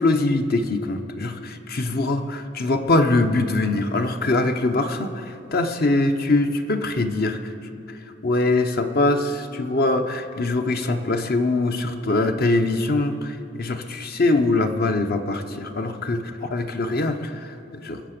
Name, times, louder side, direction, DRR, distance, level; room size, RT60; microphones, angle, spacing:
voice 1, 0.0-7.4 8.2-18.0, left 2 dB, 55° left, 7 dB, 0.8 m, -23 dB
21.0 x 7.7 x 6.7 m, 3.0 s
head